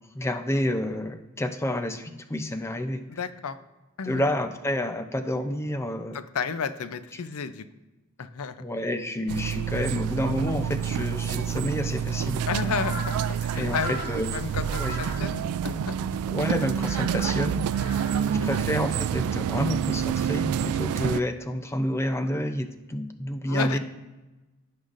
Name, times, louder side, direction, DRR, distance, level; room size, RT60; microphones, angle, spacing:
voice 1, 0.1-3.0 4.1-6.2 7.1-7.2 8.6-12.7 13.6-14.4 14.8-15.1 16.3-17.6 18.4-23.8, left 1 dB, 10° left, 8 dB, 0.5 m, -29 dB
voice 2, 3.1-3.6 4.0-4.2 6.0-7.7 8.2-8.6 12.5-13.1 13.4-16.2 18.3-18.5 23.5-23.8, left 5 dB, 80° left, 12 dB, 0.6 m, -32 dB
sound 1, 9.3-21.2, right 8 dB, 80° right, 0.3 m, -28 dB
Crow, 10.8-19.3, equal, 10° right, 2.8 m, -42 dB
16.5 x 5.5 x 2.6 m, 1.1 s
head